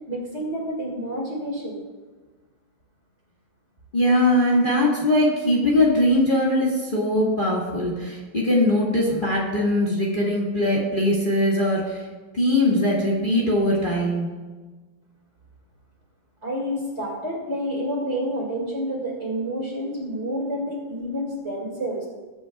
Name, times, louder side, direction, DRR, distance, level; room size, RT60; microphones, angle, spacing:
voice 1, 0.1-1.8 16.4-22.1, equal, 35° right, -2 dB, 2.7 m, -29 dB
voice 2, 3.9-12.0 12.3-14.3, left 1 dB, 25° left, -4 dB, 2.0 m, -21 dB
20.0 x 8.2 x 2.4 m, 1.3 s
omnidirectional pair, 2.1 m